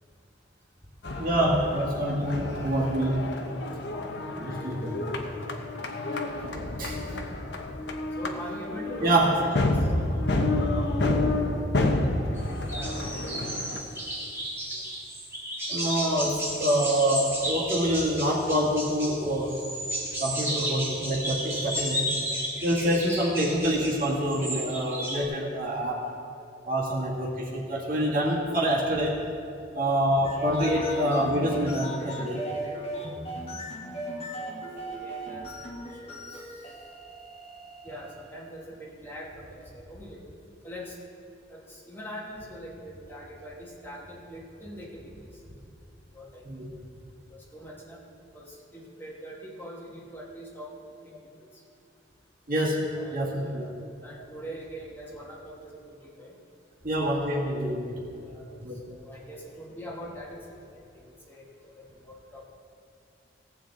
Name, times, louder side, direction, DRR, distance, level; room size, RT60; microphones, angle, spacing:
sound 1, 1.0-13.8, left 2 dB, 65° left, 0.9 m, -29 dB
voice 1, 1.2-3.3 4.4-5.2 6.8-7.0 9.0-9.4 15.7-19.7 20.2-22.2 22.6-26.1 26.7-29.2 29.7-32.4 46.4-46.7 52.5-53.6 56.8-58.1 58.6-58.8, right 1 dB, 50° right, -3 dB, 1.9 m, -26 dB
voice 2, 6.4-6.9 8.2-9.9 10.5-12.0 12.4-13.0 19.7-19.8 34.1-36.8 37.8-40.2 40.6-41.0 41.5-45.4 46.1-46.8 47.3-48.0 48.3-50.7 51.0-51.6 52.9-53.7 54.0-56.4 58.2-58.5 58.9-62.5, equal, 10° left, -3 dB, 1.3 m, -43 dB
sound 2, 12.4-12.5 12.7-25.2, equal, 15° right, 1.7 m, -33 dB
sound 3, 30.1-38.4, equal, 35° left, 1.3 m, -37 dB
17.5 x 7.6 x 3.9 m, 2.5 s
head